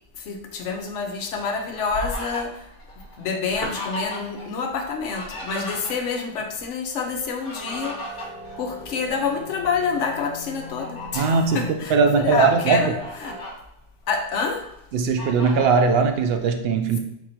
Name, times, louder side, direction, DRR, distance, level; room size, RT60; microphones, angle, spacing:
voice 1, 0.1-2.7 3.2-8.3 8.6-13.4 14.1-14.7, left 5 dB, 90° left, 4 dB, 1.0 m, -27 dB
Fowl, 1.1-4.5 4.7-6.3 7.2-9.3 9.8-10.0 10.6-11.7 12.3-12.4 12.7-13.5 14.0-14.7 15.2-15.9, left 1 dB, 50° left, 1.1 m, -36 dB
sound 1, 7.6-13.4, left 1 dB, 5° right, 0.3 m, -41 dB
voice 2, 11.1-12.9 14.9-17.0, right 5 dB, 65° right, 5 dB, 0.7 m, -20 dB
4.1 x 2.6 x 4.3 m, 0.83 s
omnidirectional pair, 1.2 m